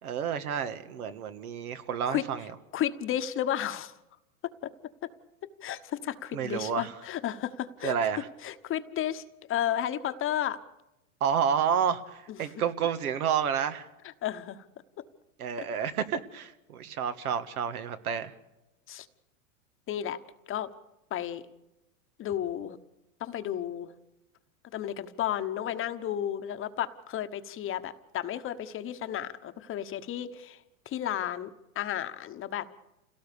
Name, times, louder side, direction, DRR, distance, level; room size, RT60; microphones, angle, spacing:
voice 1, 0.0-2.5 6.3-6.9 7.8-8.3 11.2-13.9 15.4-18.3, right 8 dB, 80° right, 10 dB, 1.6 m, -30 dB
voice 2, 2.7-3.9 4.6-4.7 5.0-5.1 5.6-7.9 8.4-9.2 9.5-10.6 12.3-12.5 14.0-14.6 15.6-15.7 18.9-19.1 19.9-20.2 20.5-20.7 21.1-21.4 22.2-22.8 23.2-23.9 24.7-30.6 30.9-31.5 31.7-32.7, left 11 dB, 30° left, 10 dB, 1.1 m, -33 dB
27.5 x 17.5 x 6.9 m, 0.94 s
hypercardioid pair, 110°, 44 cm